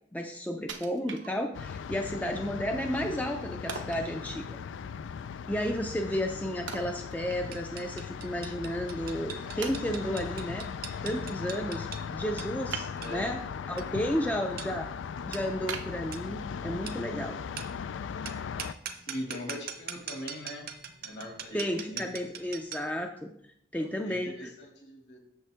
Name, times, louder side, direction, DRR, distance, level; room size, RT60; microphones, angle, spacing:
voice 1, 0.1-4.6 5.5-10.7 11.0-13.4 13.7-14.9 15.3-17.4 21.5-23.3 23.7-24.5, equal, 10° left, 4 dB, 0.4 m, -32 dB
Wood, 0.7-1.8 2.3-2.4 3.7-4.1 6.7-7.8 8.1-8.2 8.9-9.0 9.6-10.3 12.7-13.4 13.9-14.4 14.8-14.9 15.7-16.7 17.2-17.3, right 6 dB, 85° right, 0.9 m, -41 dB
sound 1, 1.5-18.7, left 6 dB, 80° left, 0.3 m, -38 dB
sound 2, 7.5-23.0, right 7 dB, 50° right, 0.7 m, -43 dB
voice 2, 12.7-13.3 15.2-15.4 19.0-20.7 21.0-22.1 23.7-25.2, left 1 dB, 60° left, 1 dB, 2.1 m, -41 dB
8.4 x 6.8 x 3.4 m, 0.70 s
head